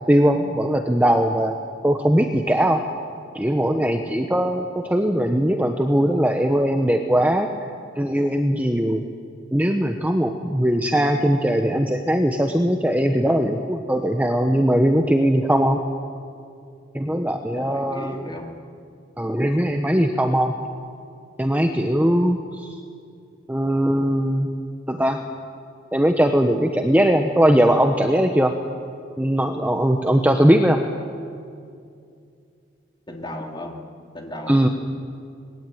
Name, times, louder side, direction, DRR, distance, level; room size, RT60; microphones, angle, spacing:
voice 1, 0.1-1.6 1.8-2.8 3.3-7.5 8.0-9.1 9.5-15.8 16.9-18.3 19.2-20.5 21.4-22.7 23.5-24.5 24.9-25.2 25.9-28.5 29.2-30.8 34.5-34.7, equal, 10° right, 4 dB, 1.0 m, -20 dB
voice 2, 17.5-18.4 33.1-33.7 34.1-34.7, left 1 dB, 25° left, 1 dB, 3.2 m, -35 dB
25.0 x 21.0 x 9.4 m, 2.4 s
head